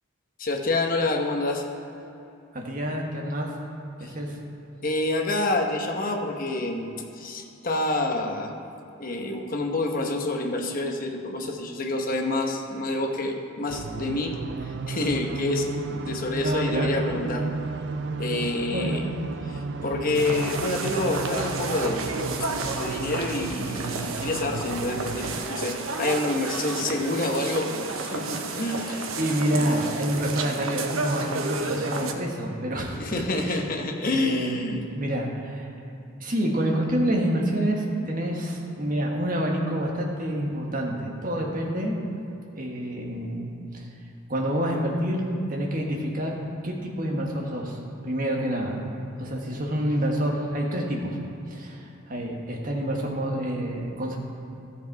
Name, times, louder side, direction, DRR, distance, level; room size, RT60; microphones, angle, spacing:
voice 1, 0.4-1.6 4.0-4.1 4.8-8.5 9.0-17.5 18.2-19.1 19.8-22.1 22.7-29.1 29.5-29.7 33.0-34.9, left 2 dB, 45° left, 3 dB, 1.0 m, -28 dB
voice 2, 2.5-3.5 4.0-4.4 16.4-16.9 18.7-19.1 29.2-33.1 33.4-33.6 34.0-34.6 34.9-35.7 36.2-41.9 42.6-43.9 44.3-45.2 45.5-46.4 46.6-47.8 48.0-48.8 49.2-51.2 51.5-54.2, right 1 dB, 45° right, 0 dB, 1.5 m, -28 dB
sound 1, 13.7-25.4, right 4 dB, 60° right, 0.4 m, -34 dB
sound 2, 20.1-32.1, right 3 dB, 85° right, 0.9 m, -31 dB
13.5 x 6.9 x 4.7 m, 2.9 s
head